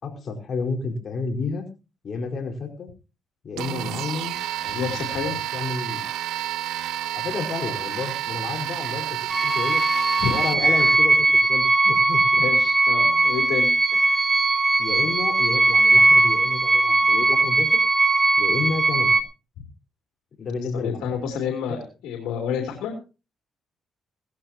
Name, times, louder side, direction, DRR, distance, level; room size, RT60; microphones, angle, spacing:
voice 1, 0.0-1.7 2.0-2.9 3.4-5.2 5.5-6.0 7.1-9.8 10.3-12.4 14.8-17.8 18.4-19.1 20.4-21.0 21.7-21.8, left 4 dB, 50° left, 3 dB, 4.7 m, -31 dB
sound 1, 3.6-10.9, right 13 dB, 85° right, 1.0 m, -30 dB
voice 2, 4.7-5.4 10.2-10.3 12.4-14.3 20.6-23.0, left 7 dB, 90° left, 3 dB, 3.1 m, -29 dB
sound 2, 9.3-19.2, right 2 dB, 25° right, 1.7 m, -19 dB
18.0 x 14.5 x 2.9 m, 0.31 s
cardioid pair, 90°, 0 cm